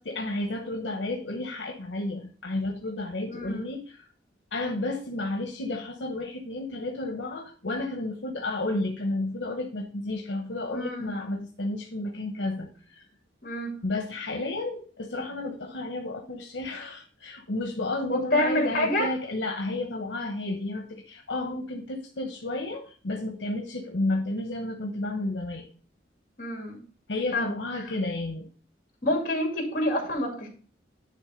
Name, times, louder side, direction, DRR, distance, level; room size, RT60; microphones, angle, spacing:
voice 1, 0.0-4.1 4.5-13.1 13.8-25.7 27.1-28.5, left 2 dB, 80° left, 4 dB, 1.0 m, -32 dB
voice 2, 3.3-3.7 10.7-11.1 13.4-13.8 18.1-19.1 26.4-26.8 27.3-27.9 29.0-30.5, left 1 dB, 50° left, 2 dB, 2.4 m, -28 dB
9.8 x 3.4 x 5.0 m, 0.42 s
head